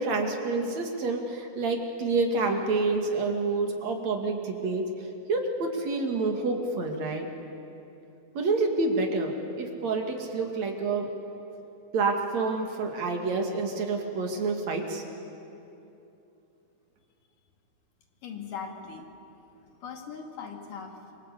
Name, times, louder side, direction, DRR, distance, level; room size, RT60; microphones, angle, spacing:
voice 1, 0.0-4.9 5.3-7.3 8.4-11.1 11.9-15.0, right 3 dB, 60° right, 3 dB, 3.5 m, -28 dB
voice 2, 18.2-19.1 19.5-21.2, left 6 dB, 85° left, 3 dB, 4.0 m, -40 dB
28.0 x 25.0 x 8.4 m, 2.8 s
omnidirectional pair, 3.6 m